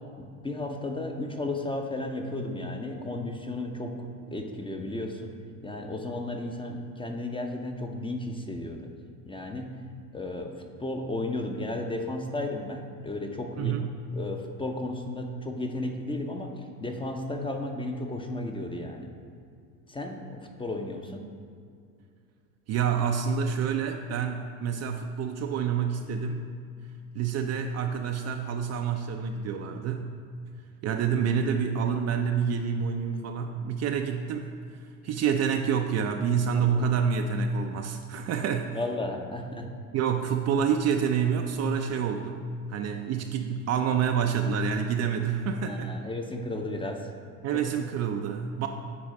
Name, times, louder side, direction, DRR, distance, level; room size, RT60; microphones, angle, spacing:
voice 1, 0.2-5.3 5.6-8.9 9.3-9.7 10.1-10.5 10.8-13.7 14.1-19.1 19.9-21.2 36.7-36.8 38.7-39.7 45.6-47.1 47.5-47.6, left 2 dB, 10° left, 3 dB, 0.6 m, -34 dB
voice 2, 13.6-13.9 22.7-26.5 27.1-30.1 30.8-34.6 35.0-38.8 39.9-42.4 42.7-46.0 47.4-48.7, right 7 dB, 35° right, 4 dB, 0.5 m, -28 dB
8.8 x 4.7 x 4.2 m, 2.3 s
hypercardioid pair, 75°, 47 cm